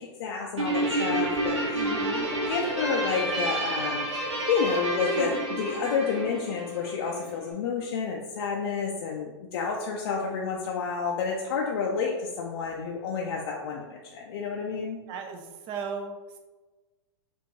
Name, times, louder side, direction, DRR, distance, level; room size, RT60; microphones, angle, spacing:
voice 1, 0.0-1.8 2.5-15.0, left 5 dB, 55° left, -1 dB, 0.5 m, -30 dB
Guitar, 0.6-7.3, right 1 dB, 85° right, 1.5 m, -29 dB
voice 2, 1.7-2.3 15.1-16.4, right 5 dB, 35° right, 5 dB, 0.5 m, -37 dB
4.4 x 2.5 x 3.1 m, 1.2 s
hypercardioid pair, 110°, 15 cm